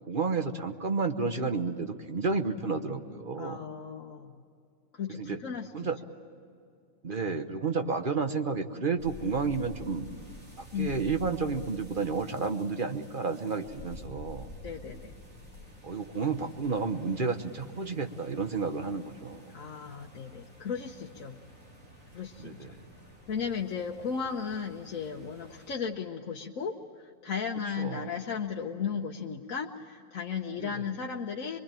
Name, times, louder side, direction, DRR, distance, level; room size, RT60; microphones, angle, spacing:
voice 1, 0.0-3.7 5.1-5.4 5.7-6.0 7.0-10.1 10.6-14.5 15.8-19.5 22.4-22.8 27.8-28.1 30.6-30.9, right 4 dB, 40° right, 7 dB, 1.2 m, -31 dB
voice 2, 3.4-4.4 4.9-5.7 10.7-11.0 14.6-15.1 19.5-21.4 22.1-22.7 23.3-31.6, left 6 dB, 75° left, 0 dB, 1.4 m, -35 dB
Wind-Gusts-late-autumn, 9.0-25.7, left 1 dB, 75° right, 5.3 m, -50 dB
24.0 x 23.5 x 8.9 m, 2.4 s
omnidirectional pair, 1.4 m